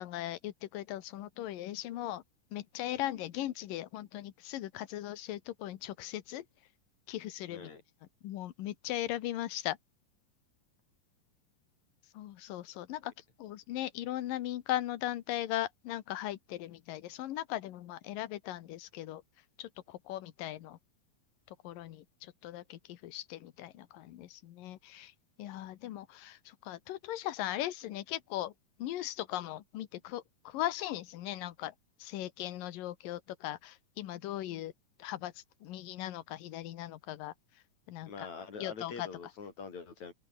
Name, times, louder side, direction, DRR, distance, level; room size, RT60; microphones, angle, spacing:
voice 1, 0.0-2.2 2.5-6.4 7.1-7.7 8.2-9.8 12.1-13.1 13.4-19.2 19.6-20.8 21.6-25.1 25.4-28.5 28.8-31.7 32.0-34.7 35.0-35.3 35.6-37.3 37.9-38.1 38.6-39.1, left 14 dB, 85° left, 3.0 m, -38 dB
voice 2, 7.5-7.8 38.1-40.1, left 5 dB, 55° left, 5.0 m, -44 dB
omnidirectional pair, 3.8 m